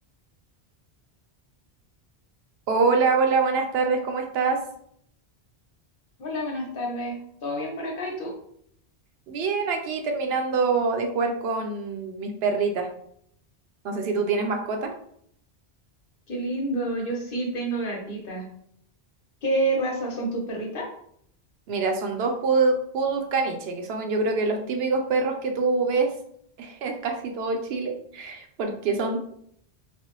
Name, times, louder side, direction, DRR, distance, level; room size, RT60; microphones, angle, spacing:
voice 1, 2.7-4.6 9.3-12.9 13.8-14.9 21.7-26.1 26.6-29.3, right 4 dB, 75° right, 4 dB, 0.8 m, -25 dB
voice 2, 6.2-8.3 16.3-18.5 19.4-20.9, right 1 dB, 60° left, 0 dB, 1.0 m, -28 dB
4.2 x 2.0 x 2.9 m, 0.69 s
omnidirectional pair, 1.1 m